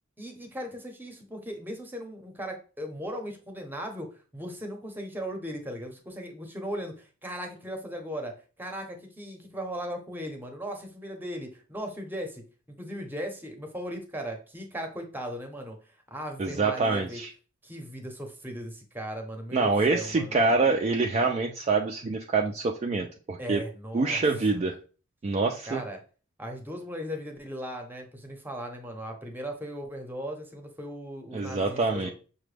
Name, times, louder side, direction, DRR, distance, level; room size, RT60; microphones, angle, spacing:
voice 1, 0.2-4.1 4.3-8.3 8.6-12.4 12.8-15.8 16.1-17.2 17.6-20.4 23.4-24.2 24.5-24.6 25.7-26.0 26.4-32.1, equal, 10° right, 4 dB, 0.7 m, -37 dB
voice 2, 16.4-17.3 19.5-23.6 23.9-24.8 25.2-25.8 31.3-32.1, right 3 dB, 30° right, 2 dB, 0.3 m, -26 dB
5.9 x 2.2 x 3.2 m, 0.37 s
head